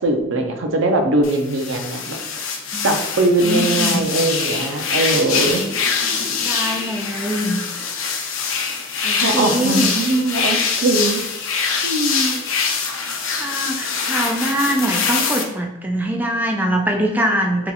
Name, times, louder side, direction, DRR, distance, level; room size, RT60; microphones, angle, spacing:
voice 1, 0.0-2.2 2.8-5.6 7.1-7.2 9.2-11.2 11.8-12.4, right 2 dB, 80° right, 4 dB, 0.5 m, -20 dB
sound 1, 1.2-15.4, left 5 dB, 90° left, 0.5 m, -23 dB
voice 2, 2.7-4.0 6.4-7.6 9.0-10.0 13.0-17.7, equal, 10° right, 2 dB, 0.3 m, -23 dB
2.8 x 2.3 x 3.9 m, 0.92 s
head